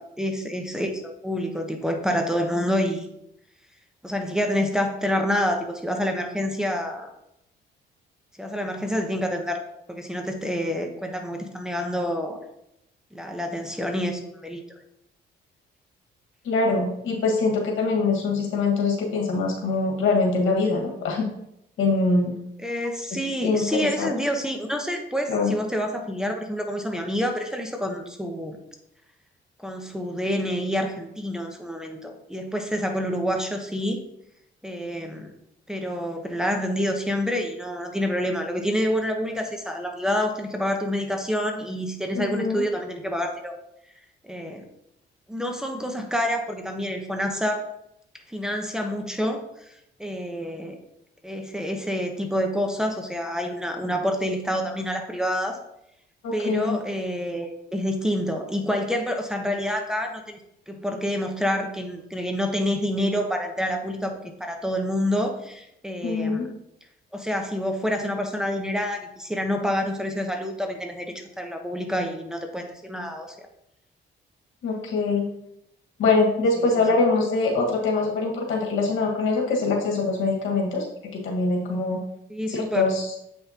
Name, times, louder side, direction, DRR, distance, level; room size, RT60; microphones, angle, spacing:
voice 1, 0.0-3.1 4.0-7.1 8.4-9.6 9.9-12.4 13.1-14.6 22.6-28.6 29.6-34.0 34.6-35.3 35.7-43.5 44.2-44.6 45.3-47.6 48.3-50.8 51.2-55.6 56.3-60.4 60.7-66.5 67.1-73.3 76.6-76.7 82.3-82.9, equal, 5° right, 3 dB, 1.0 m, -28 dB
voice 2, 16.4-21.3 21.8-22.4 23.1-23.6 24.0-24.1 25.3-25.5 42.1-42.6 56.2-56.8 66.0-66.5 74.6-75.3 76.0-80.8 81.2-82.0 82.5-83.0, left 3 dB, 80° left, 0 dB, 1.8 m, -23 dB
7.7 x 5.6 x 2.9 m, 0.81 s
cardioid pair, 90°, 20 cm